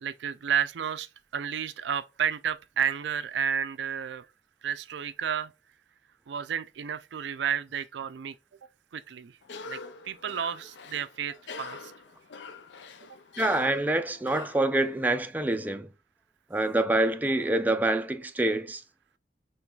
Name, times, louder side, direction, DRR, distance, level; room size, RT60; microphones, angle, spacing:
voice 1, 0.0-4.3 4.6-5.5 6.3-8.3 8.9-9.4 9.7-9.8 10.0-11.9, right 8 dB, 80° right, 0.4 m, -31 dB
Cough, 9.4-15.2, left 4 dB, 80° left, 0.5 m, -45 dB
voice 2, 13.4-15.9 16.5-18.8, right 2 dB, 10° right, 0.3 m, -26 dB
4.5 x 3.1 x 2.4 m
head